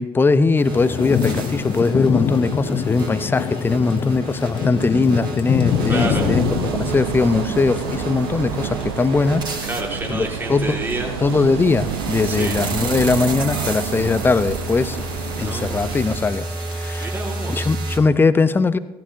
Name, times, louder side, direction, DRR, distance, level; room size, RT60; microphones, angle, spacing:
voice 1, 0.0-6.4 6.8-9.7 10.1-10.8 11.2-15.0 15.4-16.5 16.7-17.1 17.5-18.8, left 4 dB, 15° left, 15 dB, 0.6 m, -20 dB
sound 1, 0.6-9.8 11.3-18.0, right 2 dB, 35° right, 2.8 m, -32 dB
Thunder / Rain, 0.7-17.7, left 7 dB, 40° left, 1.2 m, -28 dB
sound 2, 5.6-16.2, right 8 dB, 70° right, 0.7 m, -29 dB
voice 2, 5.9-6.3 9.7-11.1 12.2-12.6 15.4-15.9 17.0-17.7, right 2 dB, 15° right, 0 dB, 1.9 m, -29 dB
16.5 x 14.5 x 2.7 m, 0.97 s
figure-of-eight pair, 55°, 13 cm